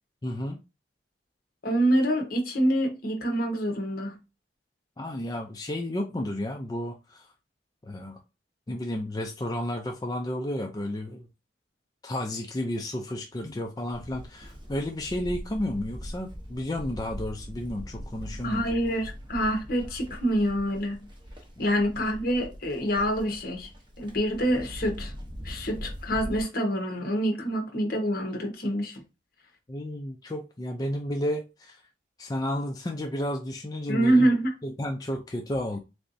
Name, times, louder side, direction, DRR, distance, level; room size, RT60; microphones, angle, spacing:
voice 1, 0.2-0.6 5.0-7.3 7.8-8.2 8.7-11.3 12.0-18.6 29.7-31.8 32.2-34.3 34.6-35.8, left 1 dB, 20° left, 0.4 m, -32 dB
voice 2, 1.6-4.2 18.4-21.1 21.6-23.7 24.0-25.1 25.4-29.0 33.9-34.5, right 1 dB, 60° left, 1.3 m, -26 dB
Livestock farm animals working animals, 13.9-26.4, equal, 30° right, 1.1 m, -41 dB
3.9 x 3.3 x 2.6 m
head